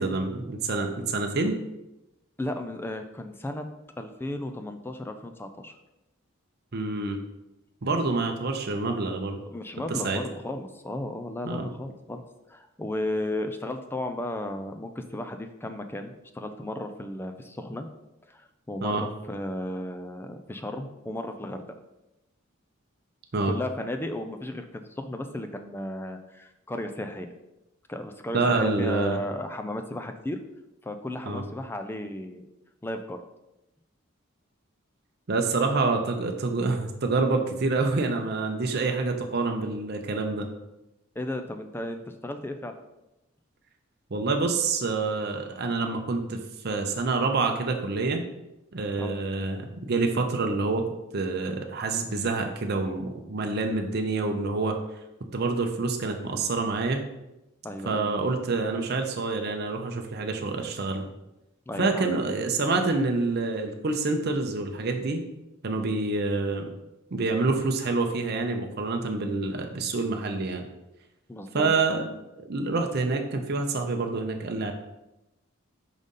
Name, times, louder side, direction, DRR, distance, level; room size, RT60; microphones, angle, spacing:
voice 1, 0.0-1.6 6.7-7.2 7.8-9.4 9.9-10.2 11.4-11.7 18.8-19.0 23.3-23.5 28.3-29.2 31.3-31.4 35.3-40.5 44.1-46.4 46.6-48.2 48.7-50.8 51.1-54.8 55.3-57.0 57.9-61.1 61.8-65.2 65.6-66.7 67.1-70.6 71.5-72.0 72.4-74.7, right 3 dB, 50° right, 4 dB, 0.7 m, -27 dB
voice 2, 2.4-3.7 4.0-5.8 9.5-12.2 12.5-17.9 18.3-21.6 23.4-27.3 27.9-30.4 30.8-32.4 32.8-33.2 41.2-42.7 49.0-49.2 57.6-58.1 61.7-62.1 71.3-71.7, left 1 dB, 10° left, 7 dB, 0.4 m, -34 dB
5.0 x 4.0 x 5.3 m, 0.93 s
head